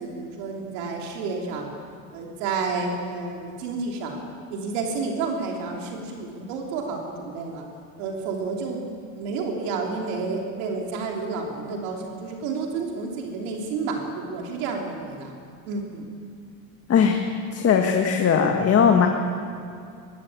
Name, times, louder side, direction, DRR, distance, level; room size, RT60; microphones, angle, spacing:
voice 1, 0.0-1.7 2.1-4.2 4.5-7.6 8.0-8.8 9.1-15.3 15.7-16.1, right 4 dB, 80° right, 1 dB, 3.1 m, -30 dB
voice 2, 16.9-17.2 17.5-19.1, left 7 dB, 40° left, 3 dB, 1.7 m, -19 dB
19.5 x 15.0 x 8.7 m, 2.4 s
supercardioid pair, 105°, 38 cm